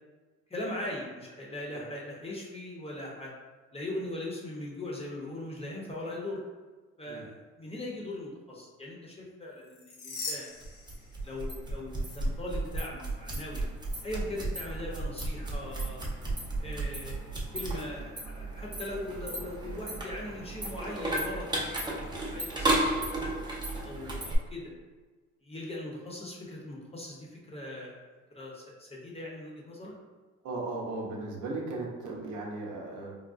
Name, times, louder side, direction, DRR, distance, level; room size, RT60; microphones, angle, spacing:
voice 1, 0.5-3.3 3.7-6.4 7.0-10.5 11.2-13.7 14.0-16.0 16.6-23.3 23.8-24.7 25.4-28.1 28.3-29.9, left 1 dB, 20° left, -3 dB, 0.7 m, -40 dB
sound 1, 9.6-11.6 11.9-12.2 13.8-14.0, left 3 dB, 75° left, 0.7 m, -41 dB
sound 2, 10.6-24.4, right 2 dB, 15° right, 0.6 m, -34 dB
voice 2, 30.4-33.2, right 2 dB, 80° right, -2 dB, 0.7 m, -36 dB
3.6 x 2.0 x 2.4 m, 1.3 s
cardioid pair, 90°, 30 cm